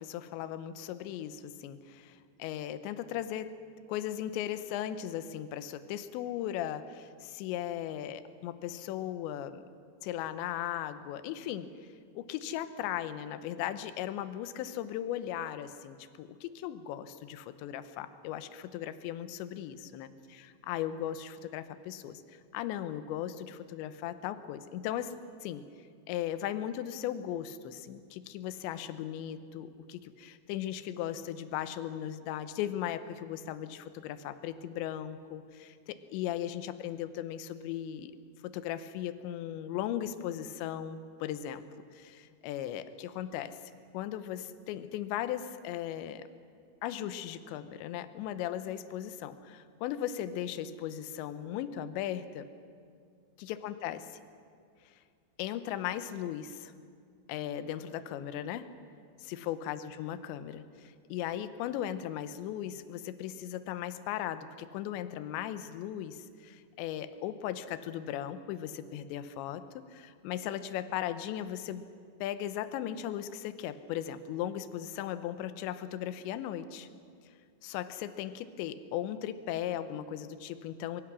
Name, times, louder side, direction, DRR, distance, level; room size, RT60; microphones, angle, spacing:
voice 1, 0.0-3.5 3.9-9.6 10.0-11.7 12.2-25.1 25.4-25.6 26.1-38.1 38.4-41.6 41.9-43.6 43.9-46.3 46.8-52.5 53.4-54.2 54.9-55.0 55.4-56.7 57.3-58.7 59.3-71.9 72.2-76.9 77.6-81.0, left 11 dB, 80° left, 12 dB, 3.1 m, -37 dB
24.0 x 23.5 x 6.2 m, 2.2 s
omnidirectional pair, 5.2 m